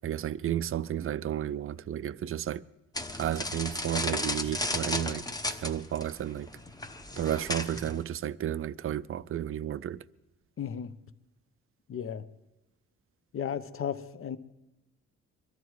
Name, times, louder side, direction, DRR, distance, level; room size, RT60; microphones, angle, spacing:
voice 1, 0.0-2.6 3.2-6.5 7.2-10.1, right 11 dB, 45° right, 0.5 m, -32 dB
sound 1, 2.9-8.0, left 2 dB, 10° left, 1.0 m, -34 dB
voice 2, 10.6-10.9 11.9-12.2 13.3-14.4, left 8 dB, 45° left, 0.9 m, -34 dB
22.0 x 12.5 x 4.7 m
cardioid pair, 90°, 30 cm